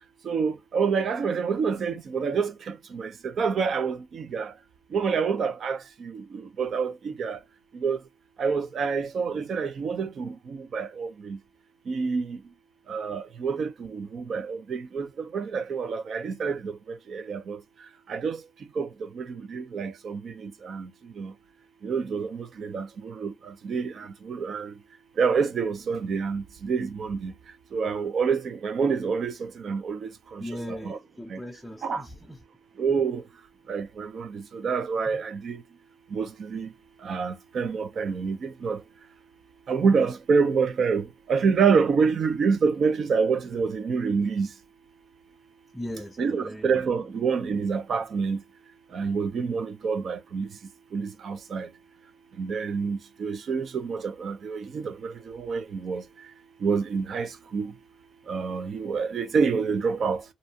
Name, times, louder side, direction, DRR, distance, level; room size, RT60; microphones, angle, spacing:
voice 1, 0.3-2.5 2.9-3.1 3.4-4.5 4.9-5.8 6.6-7.4 7.8-8.0 8.4-10.3 10.7-11.4 11.9-12.2 12.9-15.1 15.3-16.7 17.1-17.6 18.1-18.4 18.8-18.9 19.2-19.3 19.5-20.2 20.7-20.9 21.2-21.3 21.8-22.3 22.6-23.3 23.7-23.9 24.3-24.7 25.2-27.3 27.7-29.3 29.6-30.1 30.8-31.0 31.8-32.0 32.8-33.2 33.7-34.3 34.6-35.6 36.1-36.7 37.1-38.8 39.7-41.0 41.3-44.5 46.2-48.4 48.9-50.5 50.9-51.7 52.4-56.0 56.6-57.3 57.5-57.7 58.3-60.2, right 5 dB, 55° right, 0.6 m, -27 dB
voice 2, 30.4-32.4 35.1-35.2 45.7-46.8 47.1-47.2, left 1 dB, 5° left, 0.5 m, -39 dB
2.7 x 2.1 x 2.8 m
cardioid pair, 90°, 0 cm